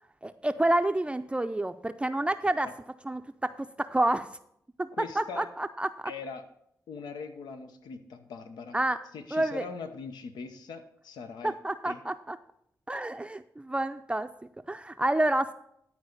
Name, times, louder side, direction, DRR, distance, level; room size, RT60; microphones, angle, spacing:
voice 1, 0.2-2.7 3.0-4.3 4.8-4.9 5.2-5.9 8.7-9.0 9.3-9.7 11.4-12.4 12.9-14.3 14.7-15.5, right 1 dB, 15° right, 8 dB, 0.5 m, -28 dB
voice 2, 5.0-5.5 6.0-6.4 6.9-8.8 9.1-11.5 11.9-12.0, left 5 dB, 85° left, 8 dB, 0.8 m, -41 dB
11.0 x 4.7 x 6.6 m, 0.72 s
cardioid pair, 60°, 7 cm